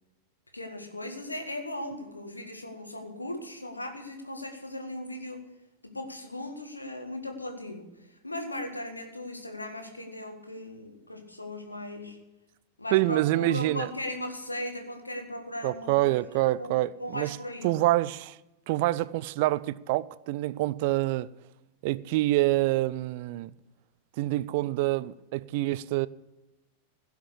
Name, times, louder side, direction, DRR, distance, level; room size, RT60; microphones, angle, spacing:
voice 1, 0.5-5.5 5.8-7.9 8.2-12.2 12.8-16.2 16.6-16.7 17.0-17.7, left 1 dB, 85° left, 1.8 m, -37 dB
voice 2, 12.9-13.9 15.6-17.4 17.6-18.4 18.7-21.3 21.8-23.5 24.2-26.1, right 17 dB, 50° right, 0.4 m, -26 dB
16.0 x 5.8 x 8.4 m
figure-of-eight pair, 90°, 0 cm